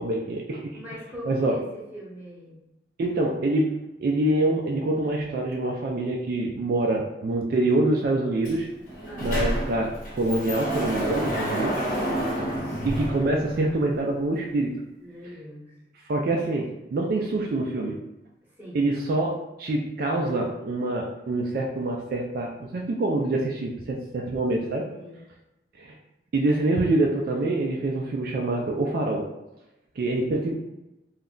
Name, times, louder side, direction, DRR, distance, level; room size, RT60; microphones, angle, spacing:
voice 1, 0.0-0.8 1.2-1.5 3.0-8.7 9.2-11.8 12.8-14.8 16.1-18.0 18.7-24.9 25.8-26.0 26.3-29.3 30.0-30.5, right 2 dB, 55° right, 0 dB, 0.3 m, -25 dB
voice 2, 0.7-2.6 9.1-9.5 15.0-15.8 18.4-18.9 24.9-25.2, equal, 10° right, -6 dB, 0.8 m, -41 dB
Sliding door, 8.4-8.6 8.9-13.9, equal, 50° left, 0.8 m, -29 dB
2.3 x 2.1 x 3.6 m, 0.92 s
head